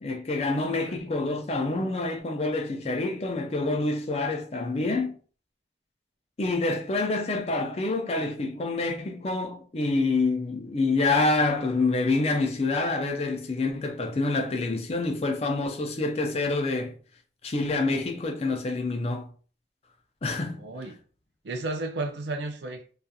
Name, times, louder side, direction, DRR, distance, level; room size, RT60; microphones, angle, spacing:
voice 1, 0.0-5.1 6.4-17.0 17.4-19.3 20.2-20.6, left 3 dB, 35° left, 0.4 m, -27 dB
voice 2, 0.6-1.1 20.6-21.0 21.4-22.8, right 2 dB, 75° right, 0.5 m, -33 dB
2.7 x 2.4 x 2.3 m
head